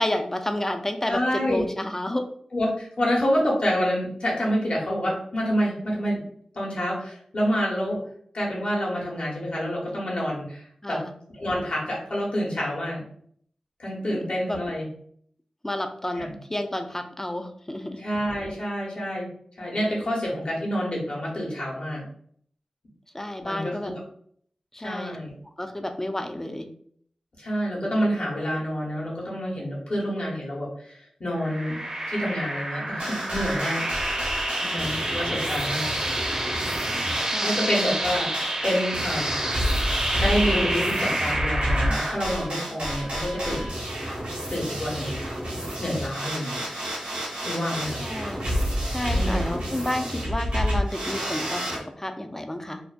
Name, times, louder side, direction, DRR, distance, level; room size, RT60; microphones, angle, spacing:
voice 1, 0.0-2.3 10.8-11.1 14.1-14.6 15.6-18.0 23.1-23.9 24.7-25.2 25.6-26.7 37.2-37.5 48.0-48.6 48.9-51.6 51.9-52.8, left 1 dB, 20° left, 6 dB, 0.4 m, -30 dB
voice 2, 1.0-1.6 2.5-6.2 6.5-8.0 8.3-11.0 11.3-13.0 13.8-14.9 16.2-16.4 18.0-19.3 19.6-22.0 23.4-23.9 24.8-25.3 27.4-31.8 32.1-34.2 34.6-35.9 37.4-39.7 40.1-43.7 44.5-45.2 45.8-46.6 47.4-48.0 49.1-49.6, equal, 60° left, -4 dB, 1.0 m, -28 dB
sound 1, 31.4-42.1, right 1 dB, 30° right, 0.6 m, -28 dB
sound 2, 33.0-51.8, equal, 85° right, 0.8 m, -30 dB
2.5 x 2.2 x 2.4 m, 0.63 s
cardioid pair, 45°, 2 cm